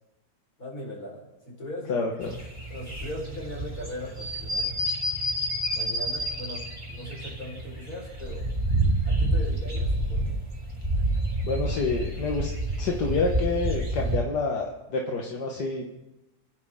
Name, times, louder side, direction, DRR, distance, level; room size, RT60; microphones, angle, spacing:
voice 1, 0.6-2.1 2.7-4.7 5.7-8.5 9.0-10.4, equal, 65° left, -3 dB, 5.3 m, -39 dB
voice 2, 1.9-2.3 11.4-12.5 12.8-15.9, left 3 dB, 90° left, 0 dB, 2.0 m, -28 dB
sound 1, 2.2-14.2, right 1 dB, 15° right, 3.4 m, -29 dB
29.5 x 10.5 x 3.7 m, 0.96 s
omnidirectional pair, 1.7 m